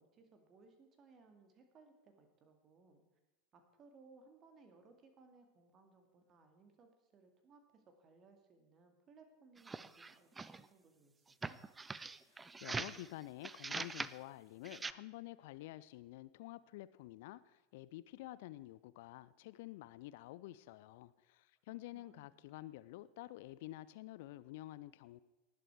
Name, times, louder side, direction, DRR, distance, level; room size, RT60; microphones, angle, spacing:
voice 1, 0.0-3.0 3.5-11.6 21.9-22.5, right 4 dB, 35° right, 5 dB, 2.2 m, -64 dB
sound 1, 9.6-10.7 11.3-13.1 13.4-14.2 14.6-14.9, right 4 dB, 15° right, 0.4 m, -43 dB
voice 2, 12.3-25.2, left 16 dB, 55° left, 17 dB, 0.4 m, -50 dB
19.0 x 7.7 x 4.7 m, 1.1 s
figure-of-eight pair, 80°, 0 cm